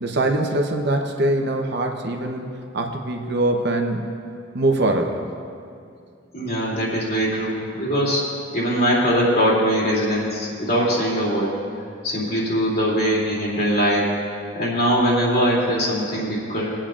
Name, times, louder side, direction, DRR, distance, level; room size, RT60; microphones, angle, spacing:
voice 1, 0.0-2.5 2.7-4.1 4.5-5.2, right 2 dB, 60° right, 2 dB, 0.9 m, -22 dB
voice 2, 6.3-8.2 8.5-11.5 12.0-14.1 14.5-16.7, equal, 50° left, -5 dB, 2.8 m, -21 dB
23.0 x 8.8 x 2.5 m, 2.4 s
head